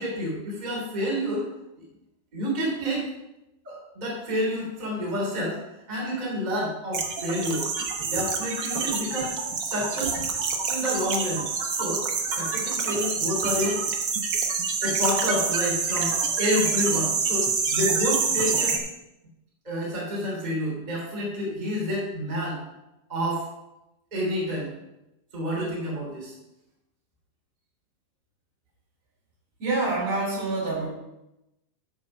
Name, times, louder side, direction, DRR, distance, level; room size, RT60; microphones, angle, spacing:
voice 1, 0.0-1.5 1.8-1.9 2.3-3.1 3.6-5.6 5.9-7.6 8.0-9.3 9.6-10.2 10.6-11.4 11.7-13.8 14.8-18.8 19.6-22.6 23.1-23.4 24.1-24.7 25.3-26.3, equal, 15° right, -4 dB, 2.8 m, -29 dB
sound 1, 6.9-18.8, right 5 dB, 85° right, 0.9 m, -27 dB
voice 2, 29.6-30.9, right 2 dB, 60° right, -4 dB, 4.9 m, -26 dB
13.0 x 4.7 x 5.3 m, 0.91 s
omnidirectional pair, 3.7 m